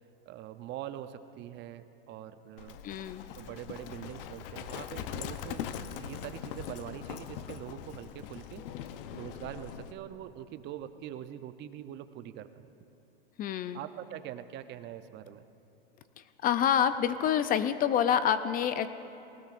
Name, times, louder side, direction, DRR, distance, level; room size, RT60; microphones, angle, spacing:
voice 1, 0.3-2.8 3.4-5.6 6.0-12.7 13.7-15.4, right 11 dB, 35° right, 11 dB, 0.6 m, -43 dB
Livestock farm animals working animals, 2.6-9.9, left 9 dB, 65° left, 0.8 m, -41 dB
voice 2, 2.8-3.3 13.4-13.8 16.2-18.9, left 9 dB, 30° left, 12 dB, 0.5 m, -27 dB
20.0 x 18.5 x 2.5 m, 2.8 s
hypercardioid pair, 110°, 30 cm